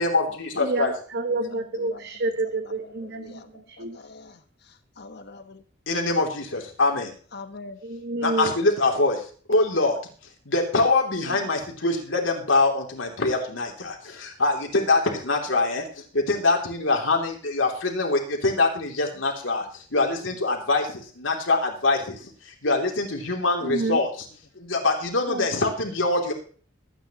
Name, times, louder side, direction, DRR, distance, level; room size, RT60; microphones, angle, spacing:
voice 1, 0.0-0.9 5.9-6.4 6.8-7.1 8.2-9.2 9.5-9.9 10.5-13.9 14.4-15.8 16.3-19.6 19.9-20.8 21.2-22.0 22.6-24.1 24.7-26.3, left 3 dB, 90° left, 1 dB, 3.0 m, -23 dB
voice 2, 0.6-4.0 7.8-8.5 23.6-24.0 25.3-25.5, right 2 dB, 60° right, 8 dB, 0.8 m, -29 dB
voice 3, 1.3-2.0 2.6-5.6 7.0-7.8, left 3 dB, 60° left, 9 dB, 1.3 m, -44 dB
23.0 x 9.4 x 3.1 m, 0.43 s
head